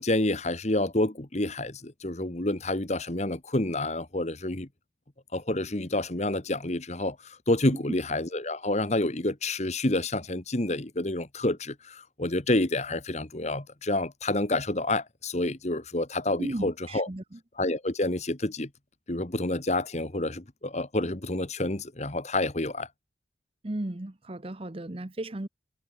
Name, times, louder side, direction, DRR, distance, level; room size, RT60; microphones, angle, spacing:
voice 1, 0.0-4.7 5.3-17.1 17.6-18.7 19.1-22.9, left 2 dB, 35° left, 1.5 m, -28 dB
voice 2, 16.4-17.4 23.6-25.5, right 1 dB, 30° right, 0.9 m, -35 dB
head